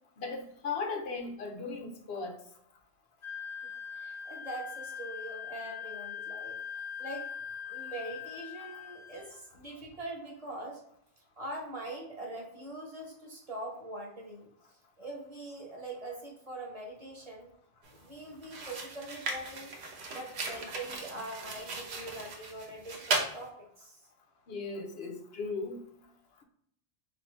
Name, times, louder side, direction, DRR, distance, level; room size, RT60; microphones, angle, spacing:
voice 1, 0.2-2.4 24.5-25.8, left 4 dB, 75° left, 3 dB, 0.9 m, -37 dB
Wind instrument woodwind instrument, 3.2-9.4, left 7 dB, 45° left, 0.9 m, -42 dB
voice 2, 3.9-6.6 7.0-7.3 7.7-10.8 11.4-14.5 15.0-17.5 17.9-19.7 20.1-24.0, right 2 dB, 35° right, -2 dB, 1.1 m, -43 dB
sound 1, 17.8-18.0 18.4-23.4, right 3 dB, 80° right, 1.0 m, -37 dB
4.2 x 2.6 x 3.1 m, 0.70 s
omnidirectional pair, 1.1 m